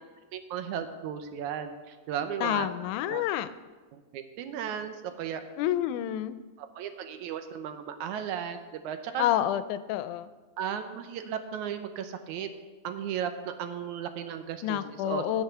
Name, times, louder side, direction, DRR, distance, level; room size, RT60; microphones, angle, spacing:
voice 1, 0.3-2.7 3.1-3.2 3.9-5.4 6.6-9.3 10.6-12.5 12.8-15.2, right 8 dB, 75° right, 8 dB, 2.1 m, -35 dB
voice 2, 2.4-3.5 5.6-6.4 9.2-10.3 14.6-15.4, left 12 dB, 85° left, 13 dB, 2.0 m, -28 dB
8.5 x 8.3 x 6.7 m, 1.3 s
omnidirectional pair, 3.5 m